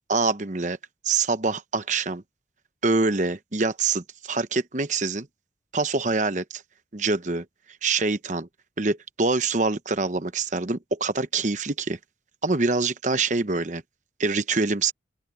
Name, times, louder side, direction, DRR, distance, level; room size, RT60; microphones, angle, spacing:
voice 1, 0.1-0.8 1.0-2.2 2.8-5.3 5.7-6.6 6.9-7.4 7.8-8.5 8.8-12.0 12.4-13.8 14.2-14.9, right 3 dB, 40° right, 1.0 m, -25 dB
open air
head